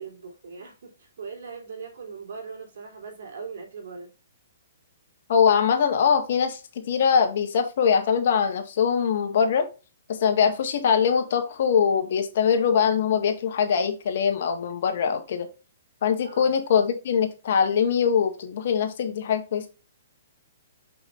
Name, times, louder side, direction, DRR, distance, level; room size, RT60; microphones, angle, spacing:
voice 1, 0.0-4.1 16.2-16.5, right 5 dB, 70° right, 3.4 m, -40 dB
voice 2, 5.3-9.7 10.2-15.5 16.0-19.7, left 7 dB, 60° left, 1.6 m, -22 dB
6.8 x 5.7 x 2.5 m
hypercardioid pair, 145°, 0 cm